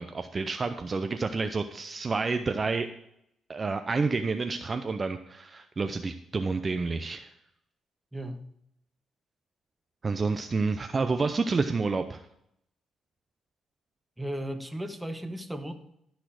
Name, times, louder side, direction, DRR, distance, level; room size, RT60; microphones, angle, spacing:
voice 1, 0.0-2.9 3.5-7.3 10.0-12.2, right 4 dB, 35° right, 8 dB, 0.5 m, -29 dB
voice 2, 8.1-8.5 14.2-15.7, right 1 dB, 5° right, 7 dB, 1.0 m, -35 dB
12.5 x 4.2 x 6.1 m, 0.76 s
cardioid pair, 90°, 0 cm